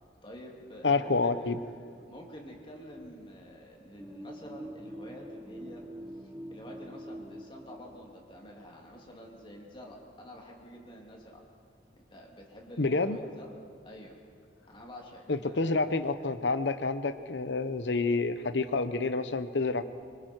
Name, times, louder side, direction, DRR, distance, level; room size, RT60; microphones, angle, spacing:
voice 1, 0.2-1.3 2.1-5.9 6.1-11.4 12.1-13.5 13.8-14.2 14.7-15.7, equal, 30° left, -1 dB, 2.9 m, -48 dB
voice 2, 0.8-1.6 12.8-13.2 15.3-19.8, left 3 dB, 80° left, 11 dB, 0.9 m, -28 dB
sound 1, 4.0-8.4, equal, 10° right, 0.8 m, -44 dB
26.0 x 25.0 x 4.6 m, 2.2 s
head